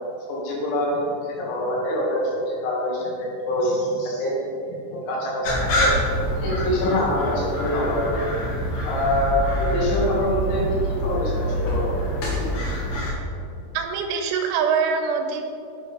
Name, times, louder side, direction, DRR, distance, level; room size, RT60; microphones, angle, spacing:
voice 1, 0.3-4.3 4.7-5.9 6.2-12.0 12.2-12.5 12.8-12.9, left 1 dB, 75° left, -4 dB, 4.1 m, -25 dB
sound 1, 5.4-13.1, equal, 60° left, 2.1 m, -26 dB
voice 2, 13.7-15.4, right 6 dB, 90° right, 5 dB, 3.2 m, -23 dB
9.1 x 8.2 x 3.4 m, 2.6 s
omnidirectional pair, 5.4 m